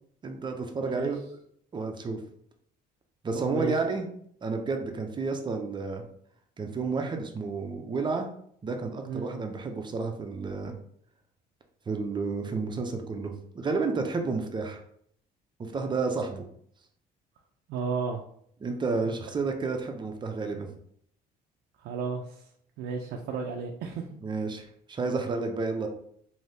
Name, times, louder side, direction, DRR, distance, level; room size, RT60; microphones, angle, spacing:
voice 1, 0.2-1.2 1.7-2.2 3.2-4.1 4.4-6.0 6.6-8.3 8.6-10.7 11.9-14.8 15.6-16.4 18.6-20.7 24.2-25.9, right 4 dB, 25° right, 4 dB, 0.6 m, -31 dB
voice 2, 0.8-1.2 3.3-3.7 9.1-9.3 17.7-18.2 19.1-19.2 21.8-22.5 22.8-24.1, right 5 dB, 80° right, 1 dB, 0.5 m, -33 dB
3.2 x 2.7 x 2.7 m, 0.65 s
cardioid pair, 110°, 17 cm